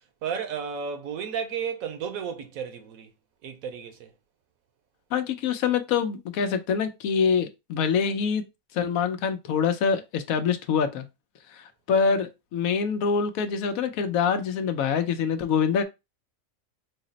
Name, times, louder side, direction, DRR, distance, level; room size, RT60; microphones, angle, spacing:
voice 1, 0.2-3.1 3.4-4.1, right 7 dB, 75° right, 1.2 m, -33 dB
voice 2, 5.1-8.4 8.7-11.1 11.5-15.8, left 6 dB, 80° left, 1.0 m, -25 dB
4.0 x 2.0 x 3.8 m
omnidirectional pair, 1.5 m